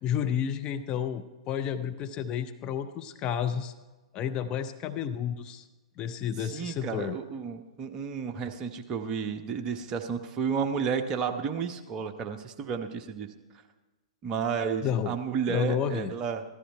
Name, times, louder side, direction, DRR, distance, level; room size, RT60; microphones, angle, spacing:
voice 1, 0.0-3.7 4.1-5.7 6.0-7.2 14.8-15.1 15.5-16.1, left 8 dB, 25° left, 7 dB, 0.6 m, -31 dB
voice 2, 6.4-13.3 14.2-16.4, right 6 dB, 25° right, 6 dB, 0.9 m, -32 dB
15.0 x 13.0 x 4.5 m, 1.2 s
figure-of-eight pair, 115°, 3 cm